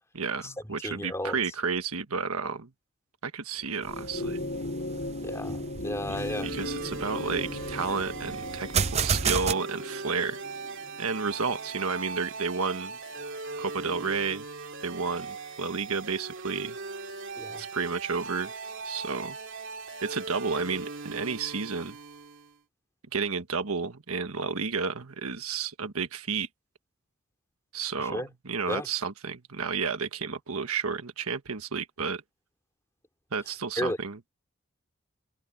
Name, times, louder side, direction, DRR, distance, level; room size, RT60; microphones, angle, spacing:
voice 1, 0.1-2.7 3.2-4.4 6.3-10.4 11.0-13.0 13.6-14.4 14.8-16.8 17.6-18.5 18.8-19.4 20.0-22.0 23.1-26.5 27.7-32.2 33.3-34.2, right 5 dB, 75° right, 1.4 m, -31 dB
voice 2, 0.8-1.4 5.2-6.5 17.4-17.6 28.1-28.3 28.7-28.9 33.8-34.0, left 1 dB, 15° left, 3.6 m, -33 dB
sound 1, 3.8-12.5 13.7-13.8, left 2 dB, 50° left, 4.1 m, -38 dB
sound 2, 3.8-9.5, right 6 dB, 30° right, 0.6 m, -32 dB
sound 3, 6.2-22.6, right 3 dB, 60° right, 2.7 m, -39 dB
head